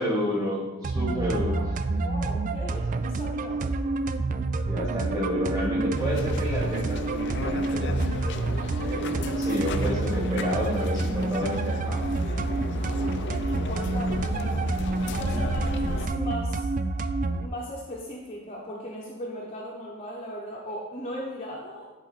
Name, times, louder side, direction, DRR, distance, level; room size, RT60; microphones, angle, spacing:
voice 1, 0.0-1.6 1.9-2.0 3.1-3.2 4.7-8.0 8.8-12.0 15.0-15.6, equal, 15° right, -5 dB, 2.3 m, -30 dB
sound 1, 0.8-17.5, right 3 dB, 35° right, 0.3 m, -28 dB
voice 2, 1.3-3.6 12.8-14.7 15.0-16.7 17.4-21.9, equal, 30° left, -4 dB, 0.9 m, -38 dB
sound 2, 5.9-16.1, left 3 dB, 55° left, 0.5 m, -34 dB
10.5 x 3.9 x 4.1 m, 1.2 s
head